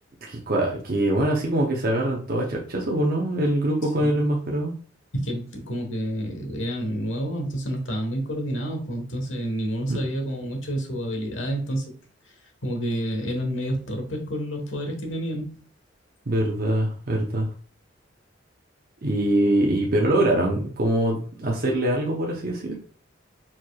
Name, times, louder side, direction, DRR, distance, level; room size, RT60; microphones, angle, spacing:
voice 1, 0.2-4.7 9.9-10.0 16.3-17.5 19.0-22.8, right 1 dB, 50° right, -2 dB, 0.7 m, -23 dB
voice 2, 3.8-4.2 5.1-11.8 12.2-12.3 12.6-15.6, equal, 75° left, 3 dB, 1.3 m, -29 dB
4.6 x 4.3 x 2.3 m, 0.42 s
head